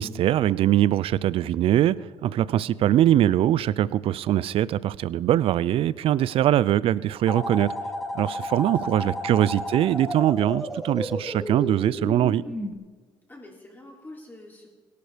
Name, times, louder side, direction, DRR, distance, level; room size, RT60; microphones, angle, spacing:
voice 1, 0.0-7.7 8.1-12.4, right 12 dB, 65° right, 20 dB, 0.5 m, -22 dB
voice 2, 2.8-3.4 8.6-9.3 13.3-14.7, left 1 dB, 20° left, -2 dB, 3.9 m, -48 dB
sound 1, 7.3-12.7, left 1 dB, ahead, 2.1 m, -32 dB
17.5 x 12.0 x 5.1 m, 1.4 s
cardioid pair, 90°, 10 cm